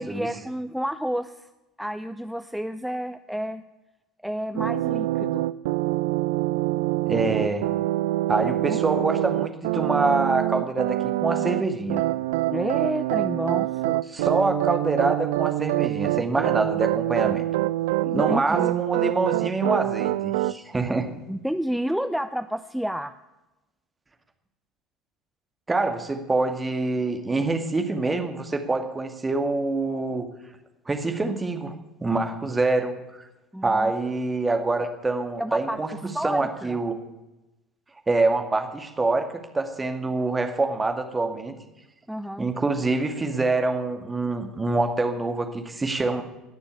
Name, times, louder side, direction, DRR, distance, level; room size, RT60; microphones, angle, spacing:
voice 1, 0.0-1.5 1.8-3.6 4.2-5.5 8.7-8.8 12.5-14.0 18.0-18.8 21.3-23.1 33.5-33.9 34.8-34.9 35.4-35.8 36.1-36.8 42.1-42.5, equal, ahead, 10 dB, 0.6 m, -30 dB
sound 1, 4.6-11.6 11.9-20.5, right 16 dB, 70° right, 0.4 m, -25 dB
voice 2, 7.1-7.7 8.3-12.0 14.1-17.4 18.1-21.1 25.7-30.3 30.9-31.7 32.0-33.3 33.6-37.0 38.1-41.5 42.4-46.2, right 3 dB, 20° right, 5 dB, 2.2 m, -25 dB
19.5 x 6.9 x 8.4 m, 1.0 s
figure-of-eight pair, 65°, 0 cm